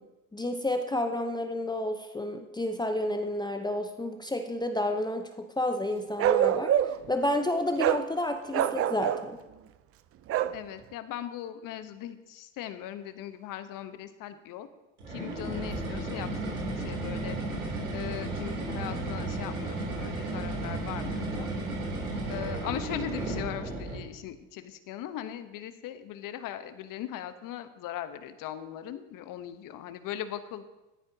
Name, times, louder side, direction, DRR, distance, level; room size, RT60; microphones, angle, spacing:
voice 1, 0.3-6.7 7.1-9.4, left 1 dB, 10° left, 6 dB, 0.8 m, -30 dB
Bark, 6.2-7.1 7.8-8.0 8.5-9.3 10.3-10.6, right 11 dB, 35° right, 0.5 m, -25 dB
voice 2, 10.5-14.7 15.1-17.4 17.9-21.5 22.3-30.6, left 11 dB, 50° left, 11 dB, 1.0 m, -39 dB
sound 1, 15.0-24.1, right 2 dB, 90° right, 3.1 m, -34 dB
13.0 x 10.5 x 2.8 m, 1.0 s
hypercardioid pair, 80°, 42 cm